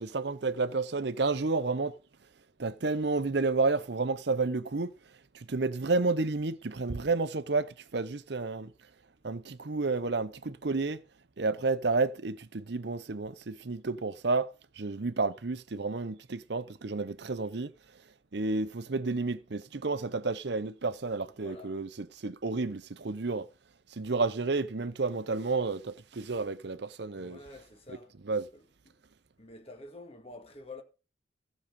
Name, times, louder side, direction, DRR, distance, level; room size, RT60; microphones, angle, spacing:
voice 1, 0.0-1.9 2.6-4.9 5.3-8.7 9.2-11.0 11.4-14.5 14.8-17.7 18.3-21.9 22.2-23.5 24.0-27.4 28.3-28.5, right 3 dB, 60° right, 0.7 m, -31 dB
voice 2, 21.4-21.9 27.1-28.2 28.5-29.0 29.4-30.8, left 2 dB, 30° left, 1.9 m, -48 dB
15.0 x 6.5 x 5.2 m
head